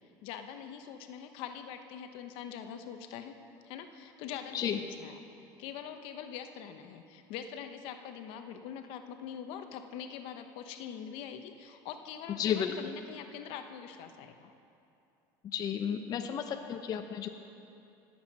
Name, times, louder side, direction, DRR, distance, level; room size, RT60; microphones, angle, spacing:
voice 1, 0.2-3.4 3.6-5.2 5.6-14.5, left 8 dB, 70° left, 7 dB, 0.9 m, -43 dB
voice 2, 12.4-12.9 15.4-17.3, left 8 dB, 40° left, 6 dB, 0.7 m, -33 dB
18.5 x 8.0 x 5.4 m, 2.7 s
supercardioid pair, 115°, 10 cm